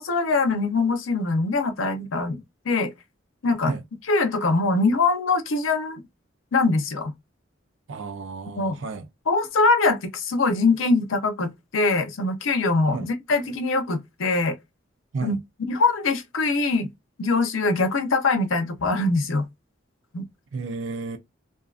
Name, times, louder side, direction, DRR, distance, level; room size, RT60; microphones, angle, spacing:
voice 1, 0.0-2.9 3.4-3.7 4.1-6.0 6.5-7.1 8.6-8.8 9.3-14.6 15.2-15.4 15.7-16.9 17.2-19.5 20.1-20.3, left 3 dB, 90° left, 0.6 m, -23 dB
voice 2, 7.9-9.1 12.9-13.1 15.1-15.4 20.5-21.2, right 3 dB, 70° right, 0.5 m, -31 dB
2.6 x 2.4 x 2.3 m
head